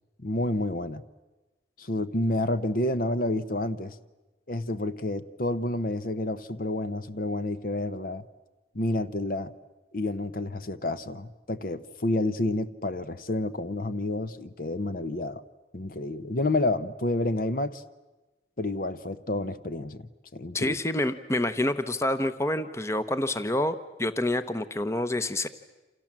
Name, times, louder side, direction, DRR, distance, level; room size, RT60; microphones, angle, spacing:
voice 1, 0.2-1.0 1.8-4.0 4.5-8.2 8.7-9.5 9.9-15.4 15.7-17.8 18.6-20.8, left 2 dB, 50° left, 12 dB, 1.0 m, -29 dB
voice 2, 20.5-25.5, left 1 dB, 15° left, 11 dB, 0.9 m, -27 dB
29.5 x 27.5 x 7.5 m, 1.2 s
head